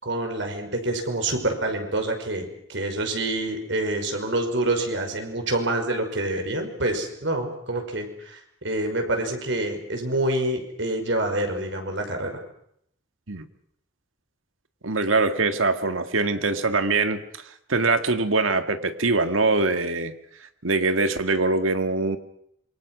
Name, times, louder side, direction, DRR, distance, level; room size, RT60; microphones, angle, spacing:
voice 1, 0.0-12.4, right 1 dB, 65° right, 4 dB, 5.7 m, -27 dB
voice 2, 14.8-17.2 17.7-20.1 20.6-22.2, right 3 dB, 90° right, 8 dB, 1.9 m, -23 dB
27.5 x 24.5 x 6.3 m, 0.72 s
head